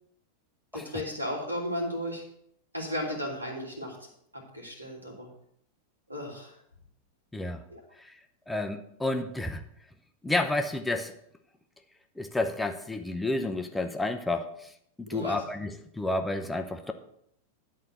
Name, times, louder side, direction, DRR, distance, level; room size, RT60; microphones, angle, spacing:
voice 1, 0.7-2.2 2.7-4.1 4.5-5.3 6.1-6.5 7.7-7.8 15.1-15.4, equal, 85° right, -1 dB, 2.8 m, -34 dB
voice 2, 7.3-7.6 8.0-8.1 8.5-9.6 10.2-11.1 12.2-14.7 15.0-16.9, left 2 dB, 5° left, 6 dB, 0.7 m, -30 dB
11.0 x 4.3 x 7.8 m, 0.71 s
figure-of-eight pair, 90°, 0 cm